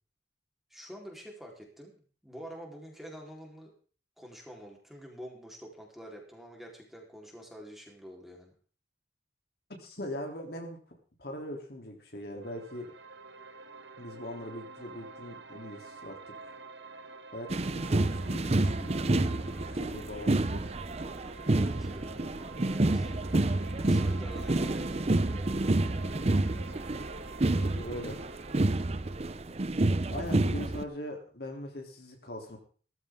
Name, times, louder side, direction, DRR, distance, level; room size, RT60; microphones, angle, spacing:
voice 1, 0.7-3.7 4.2-8.5 21.5-22.3 22.6-23.1 23.6-25.6, equal, ahead, -1 dB, 4.1 m, -47 dB
voice 2, 9.8-10.8 11.2-12.9 14.0-16.2 16.4-16.5 17.3-19.5 19.7-20.6 27.5-28.2 30.1-32.6, left 1 dB, 60° left, 2 dB, 3.4 m, -41 dB
sound 1, 12.4-29.4, right 4 dB, 75° right, 1.4 m, -48 dB
sound 2, 17.5-30.8, right 2 dB, 35° right, 0.6 m, -29 dB
17.0 x 14.0 x 3.8 m, 0.41 s
head